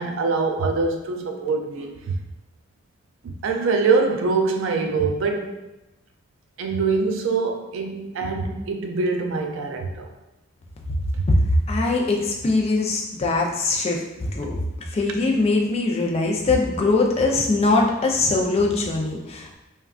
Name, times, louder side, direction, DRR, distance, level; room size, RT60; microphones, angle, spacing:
voice 1, 0.0-2.2 3.2-5.6 6.6-10.1 11.1-11.3, right 4 dB, 75° right, 4 dB, 0.4 m, -24 dB
voice 2, 11.3-14.5 14.9-19.6, left 2 dB, 30° left, -1 dB, 0.4 m, -21 dB
3.6 x 2.2 x 2.3 m, 0.97 s
head